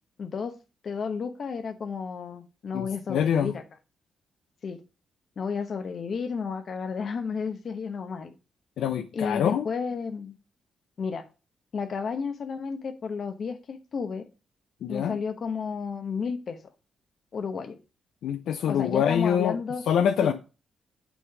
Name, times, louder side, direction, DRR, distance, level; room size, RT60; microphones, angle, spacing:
voice 1, 0.2-0.5 0.8-3.6 4.6-4.8 5.4-8.3 9.1-10.3 11.0-11.2 11.7-14.2 14.9-16.6 17.3-17.8 18.7-19.8 20.2-20.3, left 5 dB, 55° left, 0.9 m, -32 dB
voice 2, 2.7-3.5 8.8-9.7 14.8-15.2 18.2-19.6 19.9-20.3, left 8 dB, 85° left, 0.4 m, -25 dB
8.3 x 3.7 x 4.8 m
cardioid pair, 90°, 0 cm